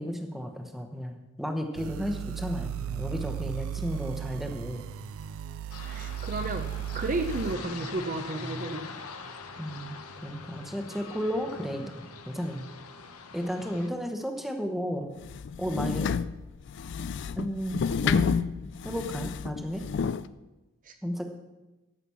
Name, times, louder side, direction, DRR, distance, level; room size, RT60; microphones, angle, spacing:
voice 1, 0.0-4.8 8.4-8.7 9.6-12.7 13.3-15.1 15.6-16.1 17.4-18.4 18.8-19.8 21.0-21.3, equal, ahead, 4 dB, 1.0 m, -33 dB
sound 1, 1.7-7.6, right 10 dB, 70° right, 0.3 m, -36 dB
sound 2, 5.7-13.9, left 4 dB, 80° left, 1.0 m, -43 dB
voice 2, 5.8-6.6 6.9-8.9 20.8-20.9, right 2 dB, 35° right, 6 dB, 0.6 m, -32 dB
sound 3, 15.2-20.3, left 6 dB, 50° left, 0.3 m, -30 dB
13.5 x 5.9 x 6.9 m, 1.1 s
head